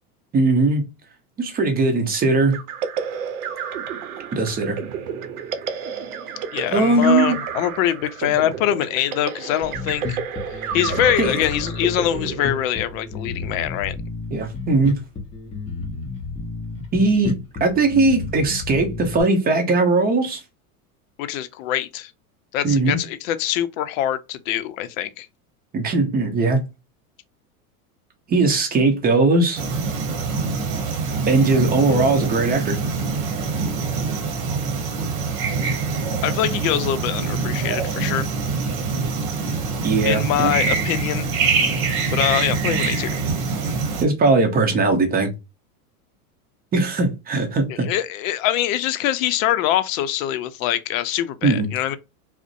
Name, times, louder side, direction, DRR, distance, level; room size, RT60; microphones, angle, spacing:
voice 1, 0.3-0.8 1.4-2.6 4.3-4.8 6.7-7.4 10.7-10.8 11.2-11.4 14.3-15.0 16.9-17.3 17.6-20.4 22.6-22.9 25.7-26.6 28.3-29.6 31.3-32.8 39.8-40.5 44.0-45.3 46.7-47.9 51.4-51.7, right 3 dB, 20° right, 0.7 m, -19 dB
sound 1, 2.5-13.1, right 7 dB, 75° right, 0.7 m, -31 dB
voice 2, 6.5-10.2 10.5-14.0 21.2-22.1 22.5-25.3 36.2-38.2 40.0-41.3 42.1-43.1 47.7-52.0, left 11 dB, 60° left, 0.5 m, -23 dB
Bass guitar, 9.6-19.2, left 4 dB, 15° left, 0.7 m, -32 dB
sound 2, 29.6-44.0, right 4 dB, 50° right, 0.9 m, -24 dB
2.5 x 2.1 x 2.4 m
hypercardioid pair, 110°, 45 cm